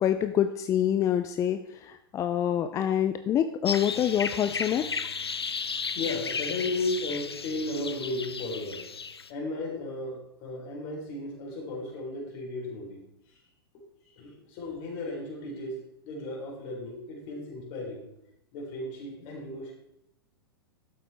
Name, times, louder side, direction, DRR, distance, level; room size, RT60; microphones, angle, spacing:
voice 1, 0.0-4.9, left 10 dB, 25° left, 9 dB, 0.5 m, -26 dB
sound 1, 3.7-9.3, left 5 dB, 90° left, 0.6 m, -34 dB
voice 2, 5.9-8.9 9.3-13.0 13.3-13.4 13.7-18.1 18.5-19.7, left 2 dB, 45° left, -1 dB, 3.8 m, -35 dB
12.5 x 7.6 x 3.5 m, 0.83 s
hypercardioid pair, 100°, 13 cm